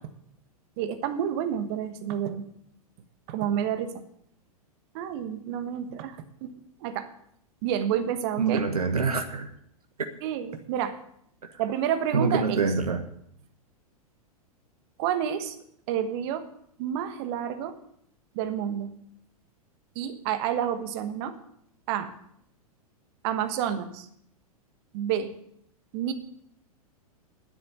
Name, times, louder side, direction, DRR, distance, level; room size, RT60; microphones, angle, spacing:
voice 1, 0.8-2.5 3.3-3.9 4.9-6.5 6.8-7.1 7.6-8.6 10.2-11.0 11.6-12.6 15.0-15.5 15.9-16.4 16.8-17.7 18.3-18.9 19.9-21.4 21.9-22.1 23.2-24.1 24.9-25.3 25.9-26.1, right 9 dB, 45° right, 9 dB, 1.4 m, -29 dB
voice 2, 8.4-9.5 12.1-13.0, right 4 dB, 75° right, 7 dB, 1.2 m, -25 dB
10.5 x 7.9 x 8.2 m, 0.70 s
figure-of-eight pair, 100°, 19 cm